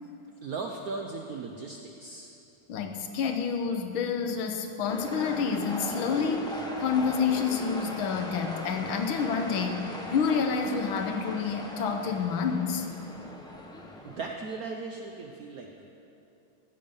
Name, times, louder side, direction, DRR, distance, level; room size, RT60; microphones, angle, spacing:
voice 1, 0.4-2.3 14.0-15.9, right 4 dB, 65° right, 2 dB, 0.9 m, -37 dB
voice 2, 2.7-12.9, left 6 dB, 80° left, 5 dB, 1.7 m, -28 dB
sound 1, 4.9-14.3, left 1 dB, 5° left, 0.4 m, -39 dB
15.5 x 7.1 x 5.3 m, 2.8 s
omnidirectional pair, 2.2 m